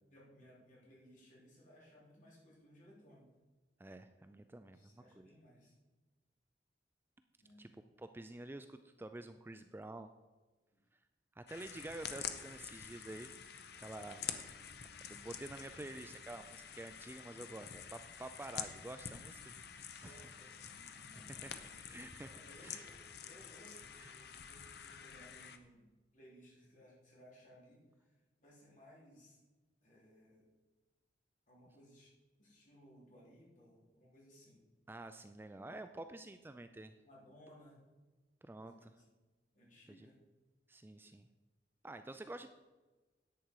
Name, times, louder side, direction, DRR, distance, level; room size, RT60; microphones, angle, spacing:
voice 1, 0.1-3.3 4.7-5.8 7.4-7.6 10.7-10.8 20.0-21.7 22.3-29.4 29.8-30.5 31.5-32.1 32.4-34.6 37.0-37.8 38.6-39.0 39.5-40.2, equal, 45° left, -5 dB, 3.9 m, -61 dB
voice 2, 3.8-5.3 7.6-7.7 8.0-10.1 11.4-13.3 13.8-14.6 15.1-19.5 20.0-20.2 20.8-20.9 21.4-21.5 21.9-22.3 22.6-22.8 24.0-24.2 34.9-36.9 38.4-38.9 39.9-40.1 40.7-41.3 41.8-42.5, right 2 dB, 10° right, 9 dB, 0.3 m, -49 dB
sound 1, 11.5-25.6, left 8 dB, 65° left, 0.8 m, -48 dB
10.5 x 8.7 x 4.7 m, 1.3 s
head